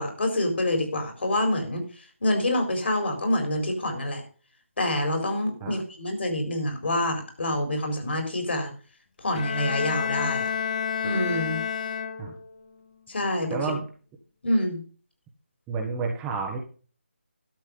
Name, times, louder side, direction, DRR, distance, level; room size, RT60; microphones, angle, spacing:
voice 1, 0.0-1.8 2.2-4.2 4.8-8.7 9.2-10.5 11.0-11.6 13.1-13.6 14.4-14.8, left 1 dB, 60° left, 4 dB, 4.2 m, -26 dB
Bowed string instrument, 9.3-12.6, left 7 dB, 35° left, 1.0 m, -29 dB
voice 2, 13.5-13.8 15.7-16.6, right 4 dB, 10° right, 1 dB, 1.3 m, -30 dB
12.0 x 7.2 x 5.3 m, 0.39 s
figure-of-eight pair, 160°, 7 cm